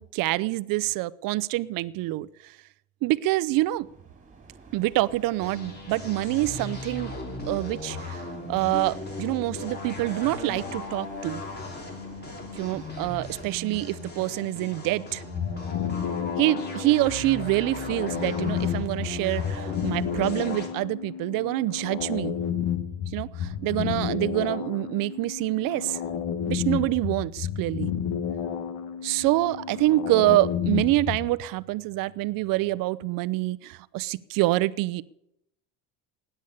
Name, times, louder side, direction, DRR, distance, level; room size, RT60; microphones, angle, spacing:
voice 1, 0.0-2.6 3.0-3.9 4.7-7.2 7.5-11.4 12.5-15.2 16.4-22.4 23.1-26.0 26.5-27.9 29.0-35.0, right 18 dB, 60° right, 18 dB, 0.7 m, -26 dB
sound 1, 3.5-13.7, right 4 dB, 20° right, 3.1 m, -50 dB
sound 2, 5.4-20.7, left 2 dB, 25° left, 3.3 m, -37 dB
sound 3, 15.3-31.3, left 8 dB, 70° left, 1.5 m, -31 dB
17.5 x 10.0 x 6.9 m, 0.82 s
cardioid pair, 130°, 38 cm